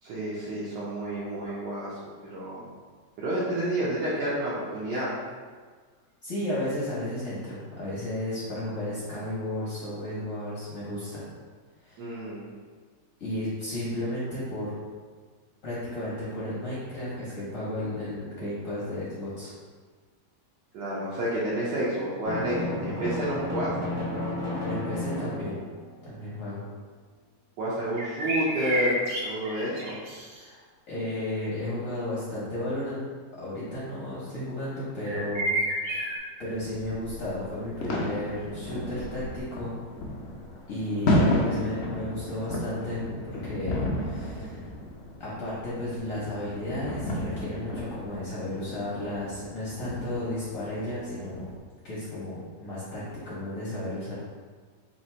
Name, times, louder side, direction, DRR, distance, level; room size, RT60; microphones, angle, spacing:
voice 1, 0.0-2.6 3.2-5.1 12.0-12.5 20.7-23.7 27.6-30.0, right 1 dB, 90° right, -8 dB, 1.4 m, -30 dB
voice 2, 6.2-11.2 11.8-12.1 13.2-14.7 15.6-19.5 24.6-25.6 26.0-26.6 30.4-30.6 30.9-33.0 33.3-35.5 35.9-39.7 40.7-44.7 45.2-51.5 51.8-54.1, left 1 dB, 55° left, -8 dB, 1.1 m, -33 dB
Drum, 22.2-26.0, left 1 dB, 25° right, 0.5 m, -32 dB
sound 1, 28.0-30.4 35.1-36.2, right 1 dB, 55° right, 1.0 m, -30 dB
sound 2, 36.5-51.6, left 1 dB, 70° left, 0.6 m, -33 dB
3.3 x 2.8 x 4.2 m, 1.5 s
omnidirectional pair, 1.9 m